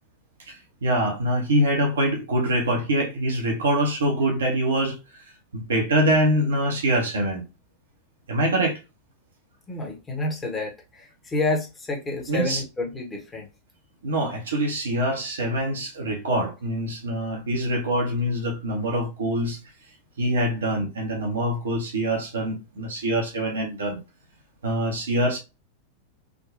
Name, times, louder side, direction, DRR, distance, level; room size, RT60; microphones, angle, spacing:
voice 1, 0.5-5.0 5.5-7.4 8.3-8.8 12.3-12.6 14.0-19.6 20.2-24.0 24.6-25.4, right 1 dB, 65° right, 0.8 m, -24 dB
voice 2, 9.7-13.5, left 2 dB, 15° left, 0.9 m, -29 dB
3.6 x 2.2 x 2.5 m
figure-of-eight pair, 90°, 0 cm